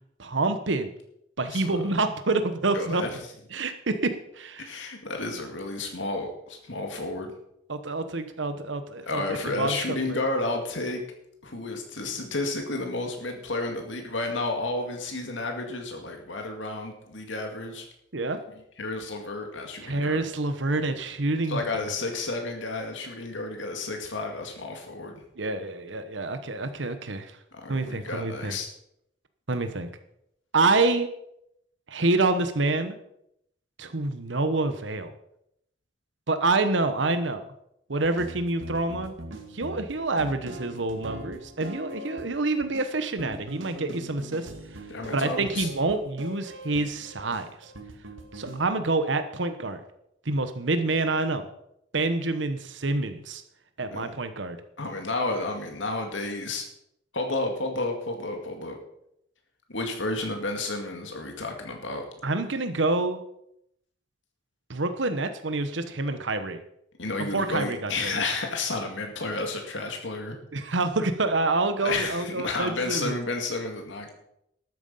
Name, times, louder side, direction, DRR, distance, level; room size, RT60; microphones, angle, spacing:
voice 1, 0.2-0.9 1.4-3.0 3.5-4.7 7.7-10.2 18.1-18.4 19.8-21.6 25.4-27.3 27.7-28.5 29.5-29.9 30.5-31.1 31.9-33.0 33.8-35.1 36.3-37.4 37.9-39.1 39.5-44.5 45.1-47.7 48.3-49.8 50.2-51.5 51.9-53.4 53.8-54.6 62.2-63.2 64.7-66.6 67.3-68.1 70.5-73.1, right 3 dB, 75° right, 9 dB, 1.1 m, -27 dB
voice 2, 1.5-1.8 2.7-3.2 4.6-7.3 9.1-11.0 11.4-17.9 18.8-20.2 21.5-25.2 27.5-28.7 44.9-45.7 53.9-54.1 54.8-56.7 57.1-58.8 59.7-62.1 67.0-70.4 71.8-74.1, left 2 dB, 80° left, 3 dB, 2.2 m, -31 dB
sound 1, 38.0-48.6, equal, 90° right, 2.2 m, -42 dB
13.0 x 9.4 x 5.6 m, 0.77 s
head